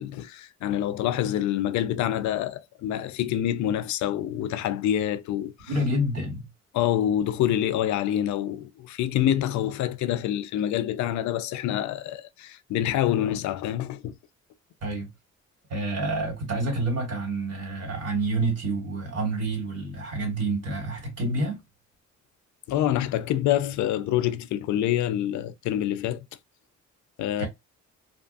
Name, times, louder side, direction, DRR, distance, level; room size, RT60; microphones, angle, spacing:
voice 1, 0.0-5.7 6.7-14.2 22.7-26.2 27.2-27.5, left 11 dB, 70° left, 0.4 m, -26 dB
voice 2, 5.7-6.5 14.8-15.1 15.7-21.6 27.4-27.5, right 2 dB, 55° right, 1.8 m, -28 dB
2.6 x 2.3 x 2.5 m
cardioid pair, 90°, 30 cm